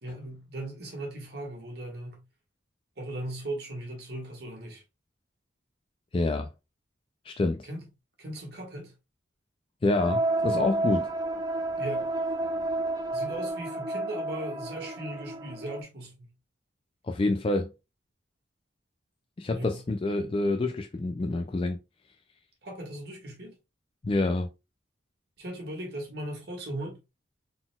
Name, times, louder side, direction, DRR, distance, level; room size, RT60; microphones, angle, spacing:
voice 1, 0.0-2.2 3.0-4.8 7.6-7.9 8.2-8.9 11.8-12.1 13.1-16.3 19.5-19.8 22.6-23.5 25.4-27.0, right 1 dB, 55° right, 1.7 m, -38 dB
voice 2, 6.1-6.5 7.3-7.7 9.8-11.1 17.0-17.7 19.4-21.8 24.0-24.5, left 2 dB, 30° left, 0.3 m, -27 dB
sound 1, 10.0-15.8, right 2 dB, 20° right, 0.6 m, -30 dB
4.0 x 3.8 x 2.3 m
head